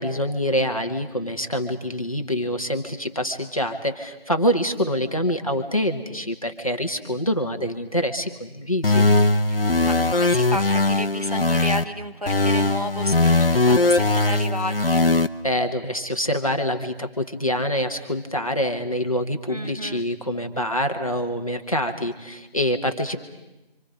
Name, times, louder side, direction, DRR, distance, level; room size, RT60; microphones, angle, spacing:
voice 1, 0.0-9.1 15.4-23.2, equal, 35° left, 5 dB, 1.5 m, -25 dB
sound 1, 8.8-11.8 12.3-15.3, left 2 dB, 65° left, 1.1 m, -19 dB
voice 2, 9.8-15.1 19.5-20.0, equal, 40° right, 6 dB, 0.9 m, -31 dB
30.0 x 26.0 x 5.2 m, 1.0 s
figure-of-eight pair, 180°, 30 cm